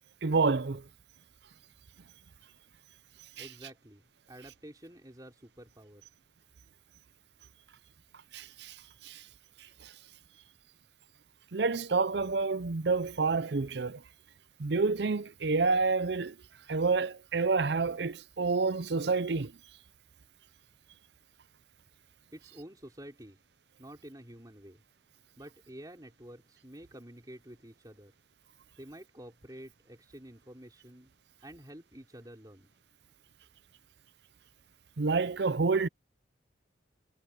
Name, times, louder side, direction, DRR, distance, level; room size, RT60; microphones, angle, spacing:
voice 1, 0.2-0.8 3.4-3.5 8.3-8.8 9.0-9.2 9.8-9.9 11.5-14.0 14.6-16.4 16.7-19.5 35.0-35.9, right 4 dB, 60° right, 0.6 m, -28 dB
voice 2, 3.4-6.0 22.3-23.4 23.8-24.8 25.4-28.1 28.8-31.1 31.4-32.7, equal, 20° right, 5.3 m, -49 dB
head